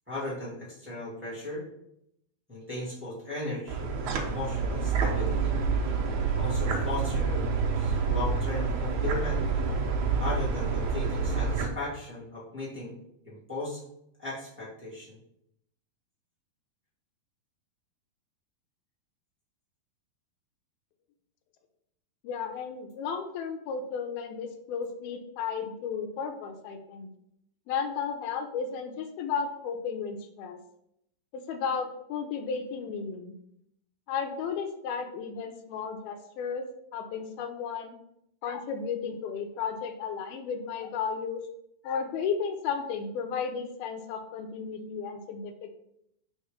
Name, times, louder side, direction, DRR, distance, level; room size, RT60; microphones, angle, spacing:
voice 1, 0.1-1.7 2.5-5.5 6.3-7.5 7.7-9.4 10.2-12.9 13.2-13.8 14.2-15.2, left 2 dB, 5° right, -8 dB, 1.2 m, -37 dB
sound 1, 3.7-11.7, right 4 dB, 70° right, 1.9 m, -28 dB
voice 2, 22.2-27.1 27.7-30.6 31.3-33.3 34.1-36.7 36.9-38.0 38.4-41.4 41.8-45.7, left 6 dB, 90° left, 5 dB, 2.6 m, -34 dB
5.3 x 4.3 x 5.0 m, 0.77 s
omnidirectional pair, 4.3 m